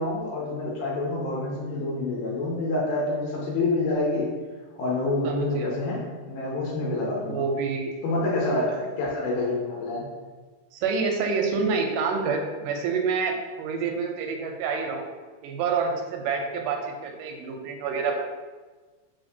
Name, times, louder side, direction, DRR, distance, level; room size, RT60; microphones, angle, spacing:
voice 1, 0.0-4.3 4.8-7.4 8.0-10.1, left 2 dB, 80° left, -5 dB, 2.3 m, -27 dB
voice 2, 5.2-5.7 7.3-7.9 8.5-8.9 10.7-15.1 15.4-18.2, right 5 dB, 90° right, 3 dB, 2.2 m, -28 dB
5.0 x 3.5 x 2.7 m, 1.3 s
omnidirectional pair, 3.6 m